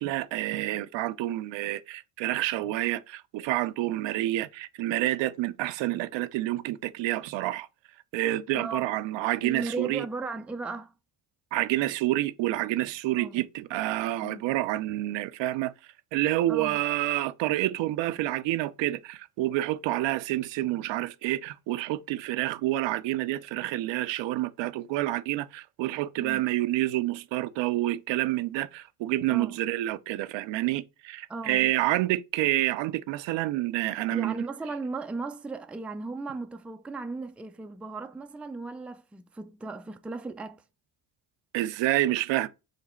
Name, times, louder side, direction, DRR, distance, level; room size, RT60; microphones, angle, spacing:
voice 1, 0.0-7.7 8.1-10.1 11.5-15.7 16.1-34.4 41.5-42.5, right 15 dB, 70° right, 0.6 m, -28 dB
voice 2, 8.5-8.9 9.4-10.9 13.2-13.4 14.2-14.5 16.5-16.8 26.2-26.4 29.3-29.6 31.3-31.7 34.1-40.6, right 3 dB, 5° right, 0.4 m, -36 dB
4.9 x 2.2 x 4.3 m
supercardioid pair, 75°, 45 cm